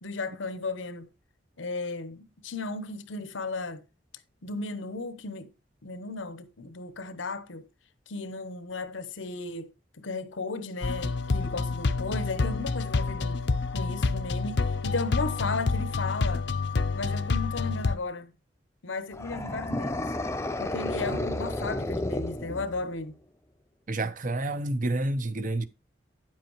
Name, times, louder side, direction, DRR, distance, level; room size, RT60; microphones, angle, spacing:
voice 1, 0.0-1.1 1.6-3.8 4.4-5.5 5.8-7.7 8.1-13.4 13.7-16.5 16.9-18.3 18.8-20.1 20.6-23.2, left 3 dB, 90° left, 0.9 m, -35 dB
sound 1, 10.8-18.0, left 3 dB, 65° left, 0.6 m, -28 dB
sound 2, 19.1-23.0, left 1 dB, 15° left, 0.6 m, -32 dB
voice 2, 23.9-25.6, right 2 dB, 45° right, 0.8 m, -29 dB
9.7 x 7.5 x 3.1 m
head